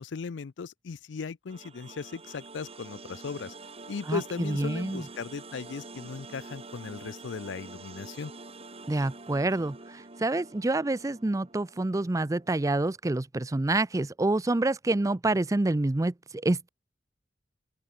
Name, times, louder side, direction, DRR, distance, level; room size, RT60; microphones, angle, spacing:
voice 1, 0.0-3.5 3.9-8.3, left 5 dB, 90° left, 0.5 m, -37 dB
sound 1, 1.5-12.5, right 3 dB, 35° right, 1.9 m, -47 dB
voice 2, 4.1-5.0 8.9-16.7, right 2 dB, 20° right, 0.5 m, -27 dB
open air
head